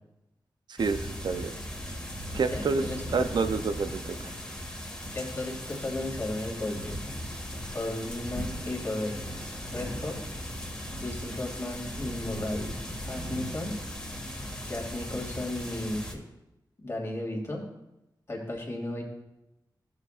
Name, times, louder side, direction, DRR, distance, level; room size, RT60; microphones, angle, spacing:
voice 1, 0.7-1.6 2.3-2.8 3.1-4.3, right 4 dB, 75° right, 9 dB, 0.6 m, -28 dB
sound 1, 0.8-16.1, equal, 15° left, 2.0 m, -37 dB
voice 2, 2.5-3.3 5.1-7.0 7.7-9.2 9.7-10.2 11.0-12.7 13.1-13.7 14.7-16.2 16.8-17.6 18.3-19.0, left 1 dB, 40° left, -2 dB, 2.5 m, -34 dB
15.0 x 7.0 x 2.5 m, 0.91 s
wide cardioid pair, 100°, 8 cm